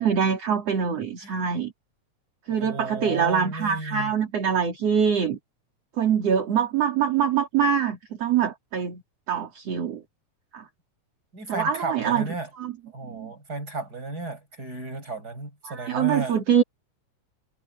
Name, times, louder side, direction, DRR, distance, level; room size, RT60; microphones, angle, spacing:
voice 1, 0.0-1.7 2.5-5.4 6.0-9.0 9.3-10.0 10.5-10.6 11.5-12.3 12.6-12.7 13.1-13.3 15.6-16.6, right 7 dB, 55° right, 3.5 m, -24 dB
voice 2, 2.5-4.1 11.3-12.5 12.9-16.4, right 3 dB, 30° right, 7.0 m, -34 dB
omnidirectional pair, 3.4 m